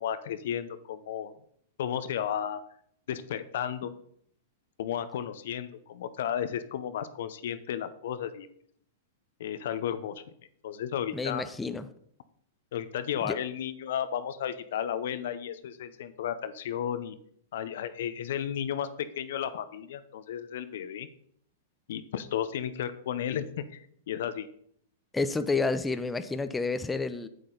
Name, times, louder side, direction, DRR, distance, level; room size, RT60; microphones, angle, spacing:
voice 1, 0.0-1.3 1.8-2.6 3.1-3.9 4.8-8.5 9.4-10.2 10.6-11.4 12.7-17.2 17.5-21.1 21.9-24.5, left 9 dB, 70° left, 12 dB, 0.7 m, -33 dB
voice 2, 11.1-11.9 13.2-13.4 25.1-27.3, left 3 dB, 10° left, 10 dB, 0.6 m, -30 dB
8.2 x 7.8 x 3.9 m, 0.65 s
hypercardioid pair, 115°, 0 cm